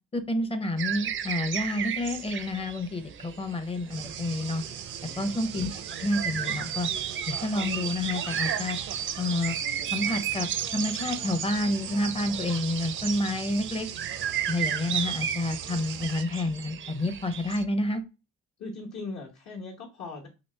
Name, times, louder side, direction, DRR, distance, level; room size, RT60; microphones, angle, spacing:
voice 1, 0.1-4.6 5.2-6.9 7.3-8.8 9.2-9.6 9.9-13.9 14.5-18.0, left 1 dB, 20° left, 9 dB, 0.6 m, -29 dB
sound 1, 0.8-17.6, right 9 dB, 45° right, 0.4 m, -34 dB
sound 2, 3.9-16.2, right 9 dB, 85° right, 0.6 m, -39 dB
voice 2, 5.1-5.5 5.8-5.9 18.6-20.3, left 3 dB, 60° left, -3 dB, 1.0 m, -40 dB
3.0 x 2.9 x 3.2 m, 0.29 s
cardioid pair, 90°, 30 cm